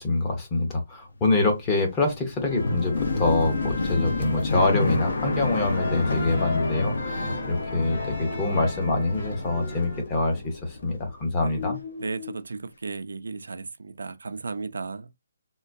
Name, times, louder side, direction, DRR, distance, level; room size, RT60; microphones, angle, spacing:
voice 1, 0.0-11.8, left 2 dB, 10° left, 0.6 m, -25 dB
sound 1, 1.1-11.2 11.5-12.3, left 3 dB, 75° left, 0.8 m, -30 dB
sound 2, 2.4-10.0, left 2 dB, 55° left, 2.0 m, -36 dB
voice 2, 12.0-15.1, right 4 dB, 75° right, 0.4 m, -35 dB
3.7 x 2.5 x 2.5 m
hypercardioid pair, 180°, 0 cm